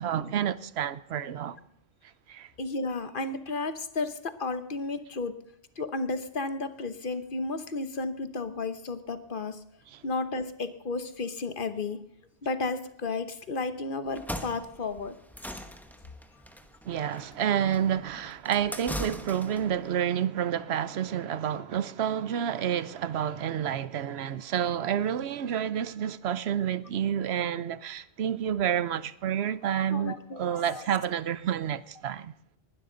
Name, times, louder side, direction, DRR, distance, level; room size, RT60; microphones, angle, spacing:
voice 1, 0.0-1.6 2.3-2.5 9.9-10.0 16.8-32.3, right 9 dB, 85° right, 1.0 m, -29 dB
voice 2, 2.6-5.3 5.8-9.6 10.0-12.0 12.4-15.1 29.9-30.9, left 3 dB, 55° left, 1.2 m, -33 dB
sound 1, 14.1-19.7, equal, ahead, 1.0 m, -40 dB
20.0 x 12.0 x 3.9 m
omnidirectional pair, 1.1 m